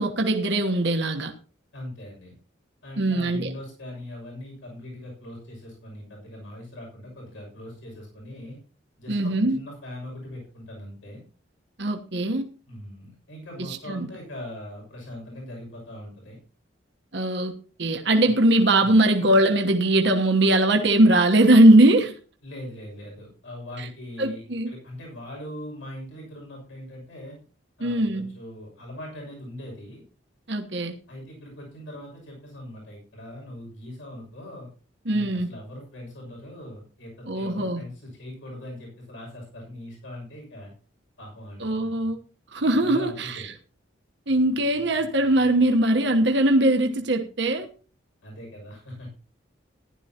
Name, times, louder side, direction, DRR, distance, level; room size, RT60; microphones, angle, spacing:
voice 1, 0.0-1.3 3.0-3.5 9.1-9.6 11.8-12.4 13.7-14.1 17.1-17.5 17.8-22.1 24.2-24.7 27.8-28.3 30.5-30.9 35.1-35.5 37.3-37.8 41.6-42.2 42.5-43.4 44.3-47.7, right 1 dB, 60° right, 1.2 m, -20 dB
voice 2, 1.7-2.3 2.8-8.6 9.0-11.2 12.7-16.4 18.2-18.3 18.8-18.9 22.4-27.4 27.8-30.0 31.1-34.7 35.1-40.7 41.2-41.9 42.8-43.5 48.2-49.1, left 1 dB, 80° left, 6.5 m, -41 dB
15.5 x 11.5 x 2.9 m
head